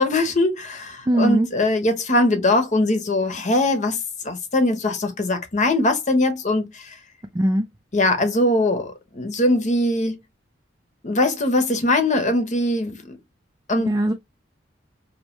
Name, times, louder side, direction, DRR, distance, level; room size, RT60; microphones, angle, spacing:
voice 1, 0.0-4.0 4.2-6.7 7.9-10.2 11.0-13.2 13.7-14.0, left 2 dB, 40° left, 1.0 m, -21 dB
voice 2, 1.1-1.5 7.3-7.7 13.8-14.1, right 1 dB, 20° right, 0.4 m, -20 dB
5.1 x 2.1 x 3.0 m
head